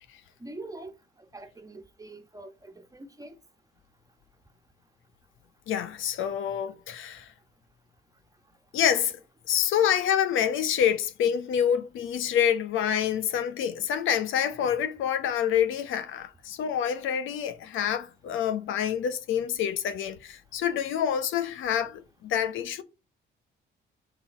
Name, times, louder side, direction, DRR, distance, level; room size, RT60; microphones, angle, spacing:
voice 1, 0.4-0.9 1.3-3.4, right 2 dB, 15° right, 1.4 m, -43 dB
voice 2, 5.7-7.3 8.7-9.1 9.5-22.8, left 9 dB, 80° left, 1.0 m, -27 dB
6.9 x 4.0 x 5.3 m
cardioid pair, 90°, 20 cm